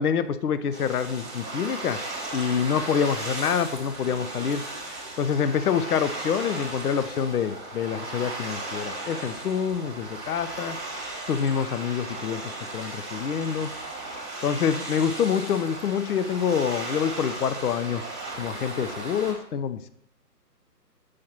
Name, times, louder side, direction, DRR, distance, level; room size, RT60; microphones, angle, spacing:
voice 1, 0.0-2.0 2.3-4.6 5.2-10.8 11.3-12.4 12.7-13.7 14.4-18.0 18.4-19.9, left 7 dB, 65° left, 13 dB, 0.5 m, -26 dB
sound 1, 0.7-19.3, right 2 dB, ahead, 1.0 m, -36 dB
6.4 x 5.7 x 2.9 m, 0.72 s
figure-of-eight pair, 145°, 48 cm